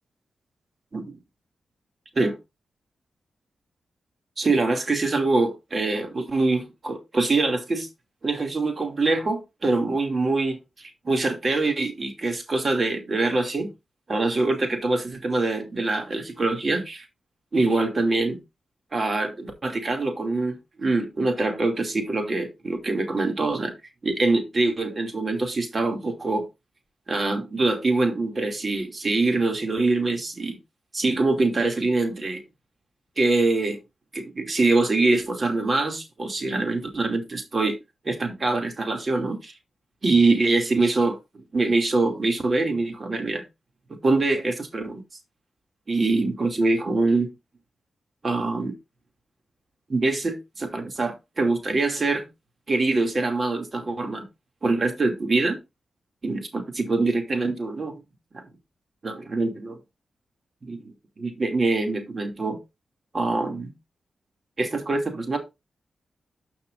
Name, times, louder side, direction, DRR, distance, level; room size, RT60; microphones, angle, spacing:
voice 1, 4.4-7.9 8.2-13.7 14.1-17.1 17.5-18.4 18.9-23.7 24.0-26.5 27.1-30.6 30.9-32.4 33.2-33.8 34.1-37.8 38.0-39.5 40.0-43.4 44.0-45.0 45.9-47.3 48.2-48.7 49.9-52.3 52.7-54.3 54.6-55.6 56.2-58.0 58.3-58.4 59.0-59.8 60.6-62.6 63.1-63.7 64.6-65.4, right 3 dB, 45° right, 2.6 m, -24 dB
12.5 x 6.4 x 2.6 m
cardioid pair, 60°, 0 cm